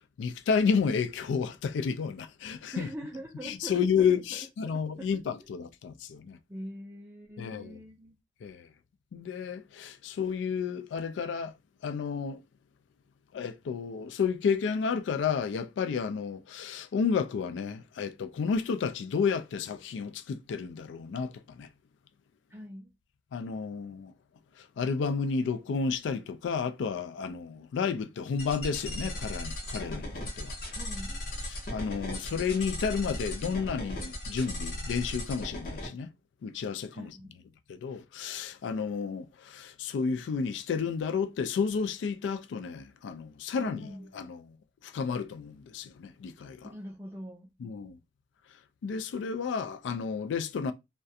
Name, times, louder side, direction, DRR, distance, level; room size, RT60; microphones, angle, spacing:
voice 1, 0.2-2.9 3.4-6.4 7.4-7.8 8.4-8.7 9.1-11.5 11.8-12.4 13.3-21.7 23.3-24.1 24.6-30.6 31.7-36.1 36.4-37.2 37.7-44.4 44.8-46.7 47.6-48.0 48.8-50.7, left 6 dB, 90° left, 0.3 m, -31 dB
voice 2, 2.7-5.5 6.5-8.1 22.5-22.9 30.7-31.2 36.9-37.4 43.6-44.1 46.6-47.5, equal, 10° right, 0.4 m, -43 dB
sound 1, 28.4-35.9, left 1 dB, 55° left, 0.7 m, -37 dB
2.3 x 2.2 x 2.6 m
head